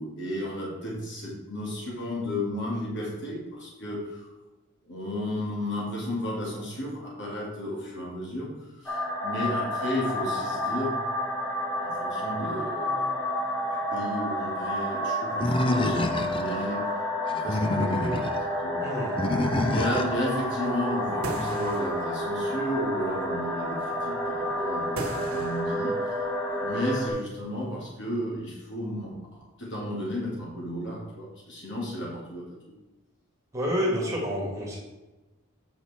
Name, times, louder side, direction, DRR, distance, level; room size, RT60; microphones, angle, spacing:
voice 1, 0.0-4.3 4.9-11.0 11.8-13.2 13.7-16.9 17.3-18.9 19.6-26.2 26.6-32.7, left 1 dB, 55° left, -3 dB, 2.3 m, -33 dB
sound 1, 8.9-27.1, equal, 5° left, 1.6 m, -30 dB
Animal, 15.4-16.6 17.3-18.4 19.2-20.2, left 1 dB, 25° left, 0.4 m, -27 dB
voice 2, 18.8-19.2 33.5-34.8, equal, 15° right, -3 dB, 2.0 m, -28 dB
sound 2, 18.9-27.8, right 2 dB, 75° right, 1.2 m, -43 dB
8.2 x 5.9 x 4.2 m, 1.1 s
head